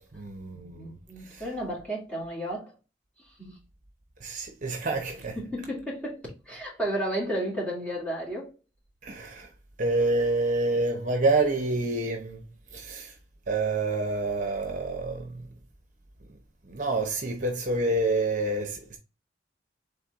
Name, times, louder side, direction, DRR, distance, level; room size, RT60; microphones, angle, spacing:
voice 1, 0.0-1.0 1.3-1.4 4.2-5.4 9.0-9.5 9.8-12.4 12.7-13.1 13.5-15.5 16.6-19.0, right 2 dB, 45° right, 0.7 m, -28 dB
voice 2, 0.5-2.7 3.2-3.6 5.1-8.5, right 1 dB, 5° left, 2.2 m, -33 dB
4.4 x 3.5 x 3.5 m
head